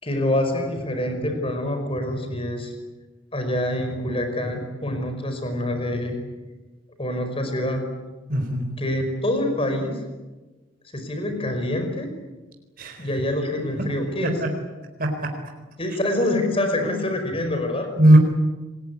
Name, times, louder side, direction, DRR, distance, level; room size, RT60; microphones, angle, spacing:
voice 1, 0.0-2.7 3.3-6.2 7.0-7.9 8.8-10.0 10.9-12.1 13.0-14.4 15.8-17.9, left 1 dB, 30° left, 6 dB, 5.3 m, -26 dB
voice 2, 8.3-8.7 12.8-13.0 13.8-13.9 14.2-14.5 15.0-15.3 18.0-18.2, right 1 dB, 45° right, 3 dB, 4.1 m, -18 dB
27.5 x 21.5 x 9.6 m, 1.2 s
head